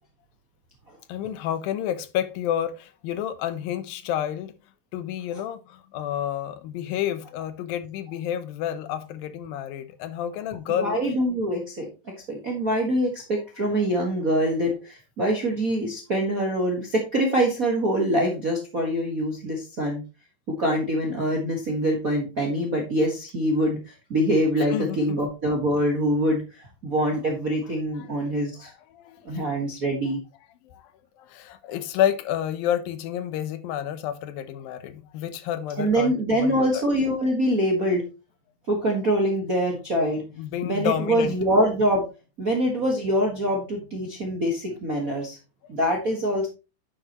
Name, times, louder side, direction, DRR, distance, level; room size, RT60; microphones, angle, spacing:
voice 1, 1.1-4.5 4.9-11.0 24.7-25.2 28.9-29.2 30.7-30.8 31.2-36.8 40.4-41.4, left 10 dB, 80° left, 2.6 m, -29 dB
voice 2, 10.8-20.0 20.5-28.7 29.2-30.2 35.8-38.0 38.7-40.4 40.6-42.0 42.4-45.4 45.7-46.5, equal, 45° right, 1.1 m, -24 dB
9.9 x 6.9 x 3.0 m
omnidirectional pair, 4.1 m